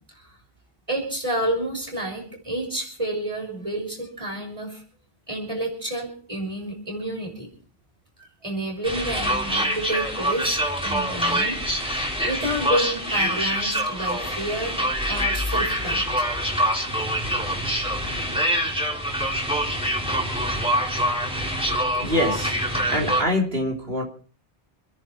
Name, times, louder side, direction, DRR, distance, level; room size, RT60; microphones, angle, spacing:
voice 1, 0.9-4.8 5.3-7.5 8.2-11.5 12.2-14.8 15.1-16.3, right 1 dB, 30° right, 1 dB, 6.1 m, -29 dB
sound 1, 8.8-23.2, equal, 5° right, 3.5 m, -25 dB
voice 2, 22.0-22.5 22.9-24.0, left 1 dB, 60° right, 1 dB, 3.8 m, -24 dB
27.5 x 10.5 x 4.5 m, 0.41 s
omnidirectional pair, 1.1 m